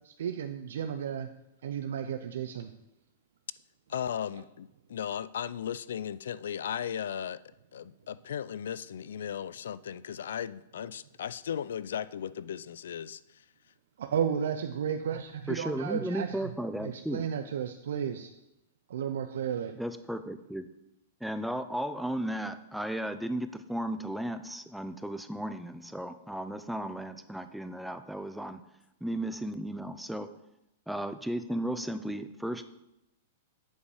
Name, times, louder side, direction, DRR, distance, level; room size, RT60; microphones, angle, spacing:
voice 1, 0.0-1.3 1.6-2.7 14.0-16.5 16.8-18.3 18.9-19.8, right 8 dB, 75° right, 7 dB, 0.5 m, -33 dB
voice 2, 3.9-7.4 7.7-13.4, left 9 dB, 80° left, 18 dB, 0.3 m, -36 dB
voice 3, 15.5-17.2 19.8-20.7 21.2-28.6 29.0-30.3 30.9-32.7, right 1 dB, ahead, 10 dB, 0.3 m, -35 dB
8.0 x 5.3 x 4.9 m, 0.88 s
supercardioid pair, 165°, 0 cm